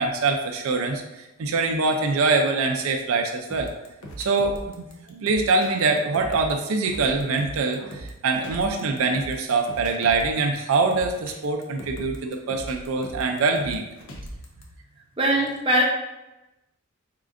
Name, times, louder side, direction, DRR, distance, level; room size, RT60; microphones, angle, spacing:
voice 1, 0.0-3.7 4.2-13.8, right 3 dB, 70° right, 4 dB, 0.4 m, -24 dB
sound 1, 3.5-14.6, equal, 70° left, 0.7 m, -40 dB
voice 2, 15.2-15.8, right 1 dB, 25° right, -1 dB, 0.6 m, -21 dB
4.1 x 3.7 x 2.5 m, 0.97 s
head